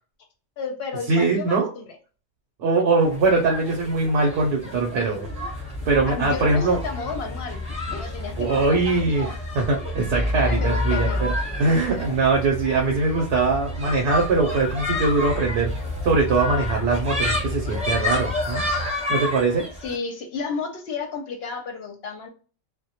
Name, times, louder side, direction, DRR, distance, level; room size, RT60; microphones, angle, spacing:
voice 1, 0.6-2.0 6.1-9.3 9.8-9.9 10.4-12.2 19.8-22.3, left 4 dB, 65° left, 3 dB, 0.7 m, -33 dB
voice 2, 1.1-1.7 2.6-5.3 5.9-6.8 8.4-11.3 11.6-15.7 16.0-18.6 19.1-19.6, right 3 dB, 65° right, 1 dB, 0.8 m, -22 dB
sound 1, 3.0-19.9, left 2 dB, 5° right, 0.8 m, -32 dB
sound 2, 5.2-18.9, left 1 dB, 25° left, 0.5 m, -31 dB
2.2 x 2.1 x 2.7 m, 0.38 s
omnidirectional pair, 1.3 m